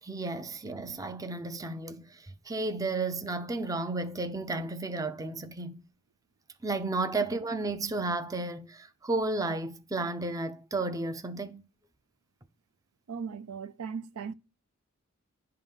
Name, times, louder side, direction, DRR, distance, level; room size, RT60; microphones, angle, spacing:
voice 1, 0.0-5.8 6.6-11.6, right 2 dB, 15° right, 0.4 m, -33 dB
voice 2, 13.1-14.3, right 6 dB, 80° right, 0.4 m, -38 dB
10.5 x 3.7 x 5.5 m
head